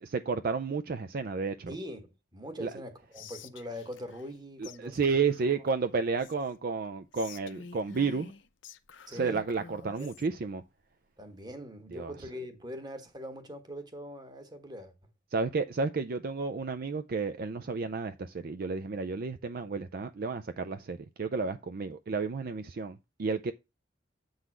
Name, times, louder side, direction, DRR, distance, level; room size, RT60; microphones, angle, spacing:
voice 1, 0.0-1.7 2.6-2.7 4.6-8.3 9.1-10.6 11.9-12.1 15.3-23.5, right 4 dB, 50° right, 0.4 m, -32 dB
voice 2, 1.7-5.0 9.1-9.4 10.0-10.1 11.2-14.9, equal, 20° right, 1.3 m, -42 dB
Whispering, 3.1-4.4 4.6-4.8 5.0-6.6 7.1-10.3, left 6 dB, 75° left, 0.7 m, -49 dB
8.0 x 3.9 x 6.1 m
head